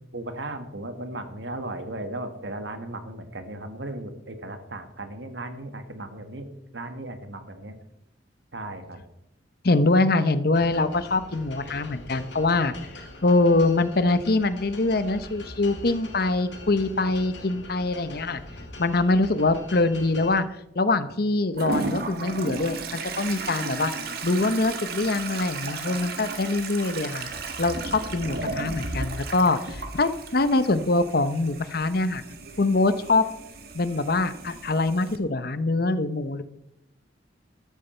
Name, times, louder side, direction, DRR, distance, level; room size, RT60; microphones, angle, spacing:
voice 1, 0.1-7.8 8.5-9.0, right 2 dB, 75° right, 8 dB, 1.7 m, -36 dB
voice 2, 9.6-12.7 13.2-18.4 18.8-20.5 20.7-23.9 24.2-27.3 27.6-32.2 32.6-33.3 33.7-36.4, left 2 dB, 55° left, 12 dB, 0.8 m, -24 dB
sound 1, 10.5-20.4, left 2 dB, 75° left, 2.4 m, -42 dB
Toilet flush, 21.6-35.2, right 3 dB, 55° right, 1.7 m, -34 dB
13.5 x 13.0 x 4.4 m, 0.85 s
head